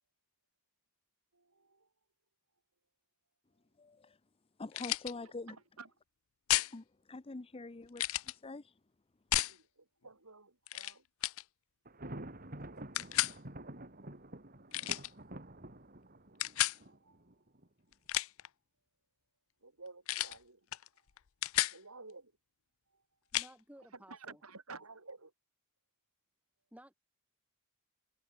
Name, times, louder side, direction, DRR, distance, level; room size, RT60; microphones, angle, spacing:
voice 1, 1.3-1.9 5.5-5.9 9.3-11.0 16.8-17.2 19.6-20.7 21.7-22.3 22.9-23.0 23.9-25.3, right 3 dB, 80° right, 5.9 m, -53 dB
voice 2, 3.8-4.2 4.6-5.6 6.7-8.7, left 3 dB, 25° left, 0.6 m, -45 dB
sound 1, 4.7-5.1 6.5-6.7 8.0-8.3 9.3-9.6 10.7-10.9 11.2-11.4 13.0-13.4 14.7-15.1 16.4-16.8 17.9-18.5 20.1-20.4 20.7-20.9 21.2-21.8 23.3-23.5, left 15 dB, 70° left, 0.6 m, -32 dB
Thunder, 11.9-17.7, right 1 dB, 40° right, 4.3 m, -48 dB
voice 3, 23.3-24.4 26.7-26.9, right 1 dB, 5° right, 3.7 m, -56 dB
head